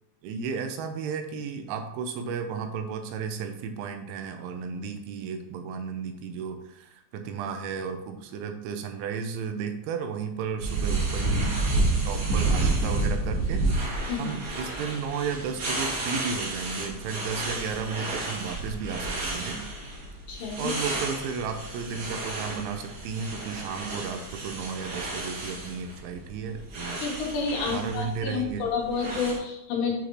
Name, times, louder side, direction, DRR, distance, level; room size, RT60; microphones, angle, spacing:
voice 1, 0.2-11.5 12.0-13.8 14.2-19.7 20.6-27.0 27.7-28.7, right 6 dB, 85° right, 6 dB, 3.0 m, -34 dB
sound 1, 10.6-29.4, right 2 dB, 60° right, 4.0 m, -30 dB
voice 2, 20.3-20.7 27.0-30.0, left 5 dB, 75° left, -1 dB, 3.1 m, -29 dB
9.3 x 3.9 x 3.0 m, 0.85 s
omnidirectional pair, 5.3 m